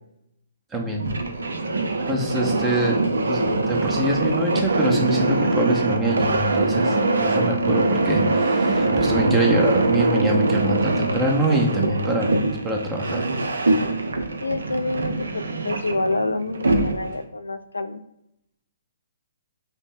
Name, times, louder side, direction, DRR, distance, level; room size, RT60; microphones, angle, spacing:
voice 1, 0.7-1.1 2.1-3.0 3.2-13.3, right 1 dB, 15° right, 1 dB, 0.7 m, -25 dB
sound 1, 0.9-17.2, right 2 dB, 75° right, 0.5 m, -23 dB
voice 2, 14.4-18.0, left 2 dB, 85° left, 11 dB, 0.3 m, -27 dB
5.3 x 2.0 x 2.5 m, 0.79 s
figure-of-eight pair, 130°, 0 cm